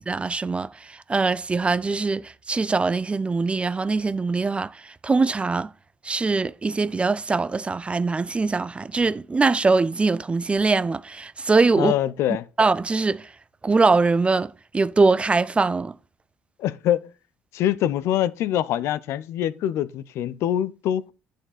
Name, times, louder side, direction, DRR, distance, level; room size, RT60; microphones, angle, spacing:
voice 1, 0.0-5.7 6.0-11.9 12.6-13.3 13.6-16.0, right 3 dB, 25° right, 0.5 m, -22 dB
voice 2, 11.8-12.5 16.6-17.0 17.5-21.1, left 11 dB, 65° left, 0.6 m, -24 dB
11.0 x 6.4 x 4.1 m
hypercardioid pair, 55°, 5 cm